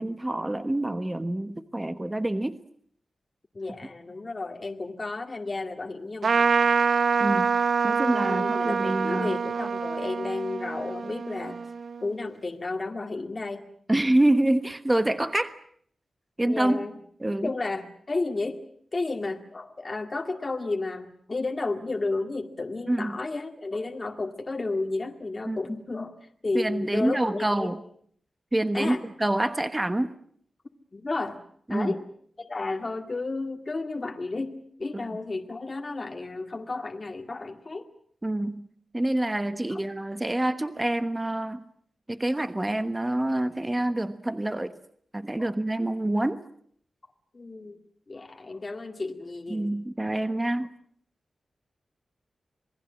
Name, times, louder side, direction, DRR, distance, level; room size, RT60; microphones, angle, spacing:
voice 1, 0.0-2.6 7.2-7.5 7.8-9.3 13.9-15.5 16.4-16.8 17.2-17.5 22.9-23.2 25.5-25.6 26.5-27.8 28.5-30.1 31.7-32.0 38.2-38.7 38.9-41.6 42.1-44.7 45.1-46.4 49.5-50.7, right 1 dB, 15° right, 10 dB, 1.2 m, -26 dB
voice 2, 3.5-6.7 8.1-11.6 12.0-13.6 16.4-17.0 17.4-18.6 18.9-27.8 28.7-29.0 30.9-31.4 31.7-32.0 32.4-37.9 39.5-39.8 45.4-45.5 47.3-47.8 48.1-49.8, left 3 dB, 35° left, 4 dB, 2.1 m, -32 dB
Trumpet, 6.2-12.1, right 5 dB, 65° right, 1.0 m, -26 dB
27.5 x 20.5 x 7.5 m, 0.63 s
wide cardioid pair, 100°, 0 cm